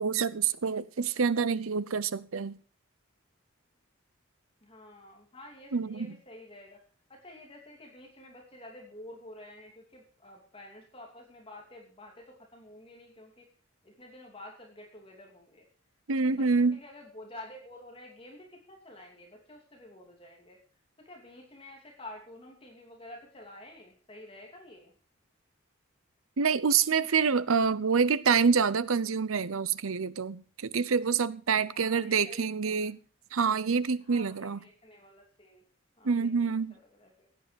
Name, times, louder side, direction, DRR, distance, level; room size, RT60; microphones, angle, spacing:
voice 1, 0.0-2.6 5.7-6.1 16.1-16.8 26.4-33.0 33.3-34.6 36.0-36.7, right 5 dB, 85° right, 0.7 m, -27 dB
voice 2, 4.6-6.8 7.1-13.5 13.8-15.7 16.2-20.6 21.0-24.9 31.7-32.9 34.0-35.6 36.0-37.3, left 1 dB, 25° left, 2.8 m, -50 dB
15.5 x 9.8 x 5.2 m
head